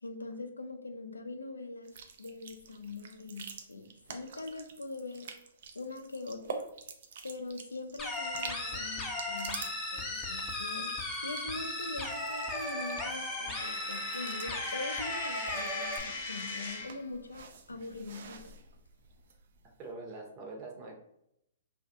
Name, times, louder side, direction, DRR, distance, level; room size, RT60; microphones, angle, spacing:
voice 1, 0.0-5.3 5.7-6.7 7.2-18.6, left 3 dB, 90° left, 7 dB, 0.3 m, -43 dB
sound 1, 1.8-19.7, right 5 dB, 60° right, 0.4 m, -48 dB
sound 2, 8.0-16.0, left 1 dB, 10° left, 0.5 m, -36 dB
Coin (dropping), 13.5-17.0, left 3 dB, 50° left, 0.7 m, -40 dB
voice 2, 19.8-21.0, right 3 dB, 35° right, -1 dB, 0.8 m, -44 dB
2.4 x 2.3 x 2.6 m, 0.79 s
hypercardioid pair, 125°, 0 cm